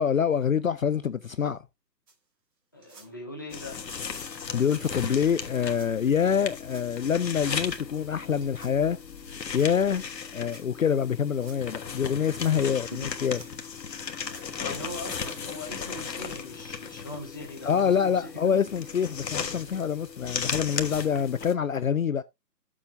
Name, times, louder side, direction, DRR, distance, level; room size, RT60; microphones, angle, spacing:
voice 1, 0.0-1.6 4.5-9.0 9.5-10.0 10.3-13.4 17.6-22.2, left 7 dB, 55° left, 0.5 m, -26 dB
sound 1, 2.1-2.2 2.8-3.1 3.7-4.0 4.7-5.0 5.7-5.9 6.6-6.9 7.6-7.9 8.4-8.8 9.5-9.7 10.4-10.7 11.3-11.6 12.2-12.6 13.3-13.8 14.2-14.5 15.1-15.4 16.1-16.2 16.6-16.7 17.4-17.5, right 4 dB, 75° right, 3.1 m, -53 dB
voice 2, 2.7-3.8 12.7-13.1 14.3-18.6, left 1 dB, 15° left, 0.7 m, -40 dB
sound 2, 3.5-21.5, left 6 dB, 80° left, 1.5 m, -36 dB
12.5 x 7.2 x 2.3 m
hypercardioid pair, 165°, 49 cm